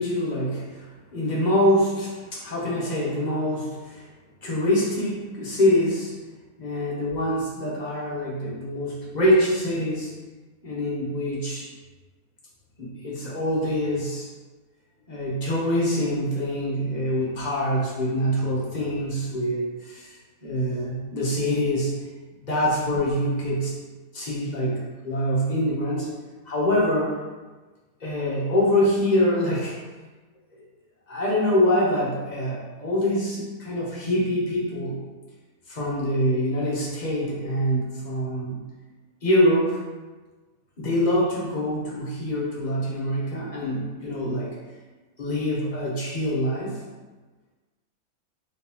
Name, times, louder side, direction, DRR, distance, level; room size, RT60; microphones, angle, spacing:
voice 1, 0.0-4.1 4.4-6.1 6.6-10.1 10.6-11.7 12.8-14.3 15.1-22.0 22.4-23.7 24.1-26.1 26.4-27.2 28.0-29.8 30.5-30.6 31.1-35.0 35.7-38.6 39.2-39.8 40.8-44.6 45.2-46.8, equal, 35° left, -5 dB, 0.8 m, -25 dB
3.8 x 3.4 x 2.9 m, 1.3 s
omnidirectional pair, 1.6 m